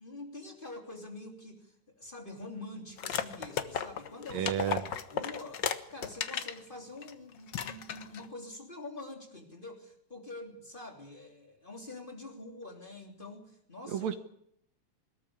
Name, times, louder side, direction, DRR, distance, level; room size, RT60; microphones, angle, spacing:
voice 1, 0.0-4.5 4.9-14.1, left 2 dB, 15° left, 1 dB, 3.1 m, -46 dB
sound 1, 3.0-6.6 7.0-7.1 7.5-8.3, left 8 dB, 55° left, 1.3 m, -35 dB
voice 2, 4.3-5.0 13.9-14.2, right 10 dB, 70° right, 10 dB, 2.3 m, -32 dB
21.0 x 14.0 x 9.8 m, 0.72 s
omnidirectional pair, 3.3 m